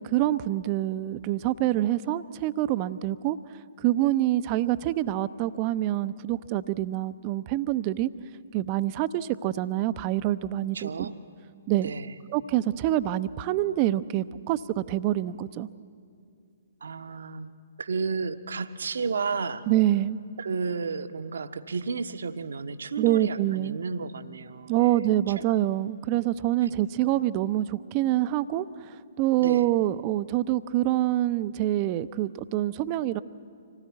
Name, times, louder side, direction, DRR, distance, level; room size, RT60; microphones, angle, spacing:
voice 1, 0.0-3.4 3.8-8.1 8.5-11.1 11.7-11.9 12.3-15.7 19.7-20.2 23.0-23.8 24.7-33.2, right 14 dB, 30° right, 15 dB, 0.6 m, -26 dB
voice 2, 10.7-11.2 11.8-12.1 16.8-17.5 17.8-19.7 20.4-25.4 26.6-26.7 29.4-29.7, right 4 dB, 65° right, 11 dB, 1.0 m, -32 dB
25.5 x 18.0 x 8.3 m, 2.4 s
figure-of-eight pair, 125°, 0 cm